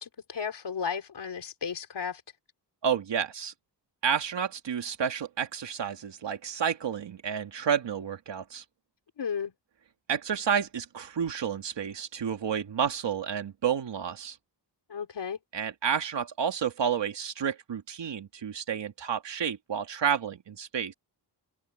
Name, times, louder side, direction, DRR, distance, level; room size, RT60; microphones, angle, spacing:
voice 1, 0.0-2.2 9.2-9.5 14.9-15.4, left 6 dB, 75° left, 3.4 m, -34 dB
voice 2, 2.8-3.5 4.0-8.6 10.1-14.4 15.5-20.9, right 8 dB, 85° right, 2.3 m, -30 dB
wide cardioid pair, 145°, 42 cm